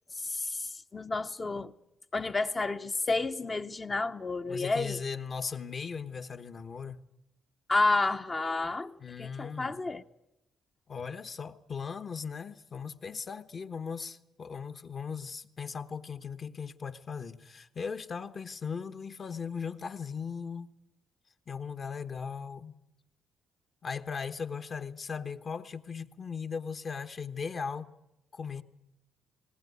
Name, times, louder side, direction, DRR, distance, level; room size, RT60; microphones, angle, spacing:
voice 1, 0.2-1.7 2.1-5.0 7.7-10.0, left 3 dB, 30° left, 0.7 m, -30 dB
voice 2, 4.5-7.1 9.0-9.8 10.9-20.7 21.5-22.8 23.8-27.9 28.3-28.6, left 6 dB, 45° left, 1.1 m, -38 dB
19.0 x 19.0 x 9.4 m
cardioid pair, 90°, 0 cm